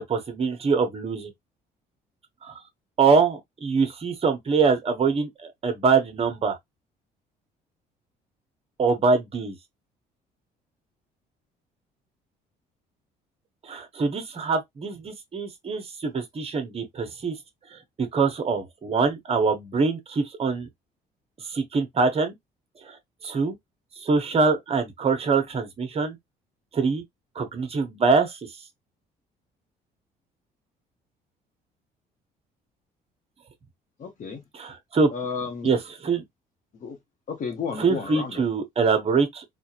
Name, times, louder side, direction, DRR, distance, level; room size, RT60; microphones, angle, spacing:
voice 1, 0.1-1.3 2.4-2.6 3.0-6.6 8.8-9.6 13.6-17.4 17.7-20.7 21.4-22.3 22.8-23.0 23.2-23.6 24.0-26.2 26.7-27.0 27.3-28.4 34.5-35.1 35.6-36.2 37.7-39.4, right 4 dB, 35° right, 1.2 m, -24 dB
voice 2, 34.0-34.4 35.1-35.7 36.8-37.0 37.3-38.3, left 5 dB, 50° left, 1.1 m, -32 dB
4.1 x 2.5 x 2.9 m
cardioid pair, 110°, 17 cm